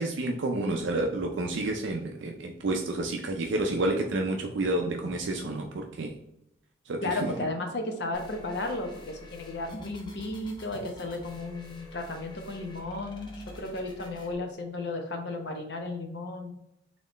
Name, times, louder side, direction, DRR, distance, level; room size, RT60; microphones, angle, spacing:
voice 1, 0.0-6.1 6.9-7.3, right 2 dB, 85° right, 2 dB, 0.5 m, -30 dB
voice 2, 7.0-16.5, left 2 dB, 65° left, 3 dB, 0.8 m, -34 dB
sound 1, 8.1-14.3, left 1 dB, 25° left, 0.6 m, -48 dB
4.2 x 3.1 x 3.0 m, 0.80 s
head